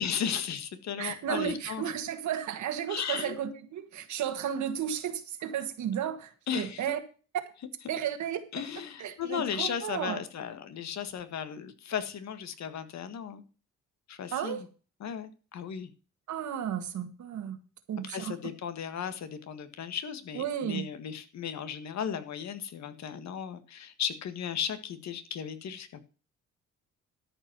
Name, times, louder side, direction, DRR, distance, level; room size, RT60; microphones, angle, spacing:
voice 1, 0.0-1.9 2.9-3.4 6.5-6.8 8.5-13.4 14.1-14.7 15.0-15.9 18.0-26.0, left 8 dB, 65° left, 10 dB, 1.7 m, -35 dB
voice 2, 1.0-7.0 7.9-8.4 9.0-10.2 14.3-14.6 16.3-17.6 17.9-18.3 20.3-20.8, right 9 dB, 70° right, 8 dB, 1.7 m, -33 dB
13.0 x 5.5 x 6.2 m, 0.36 s
cardioid pair, 90°, 30 cm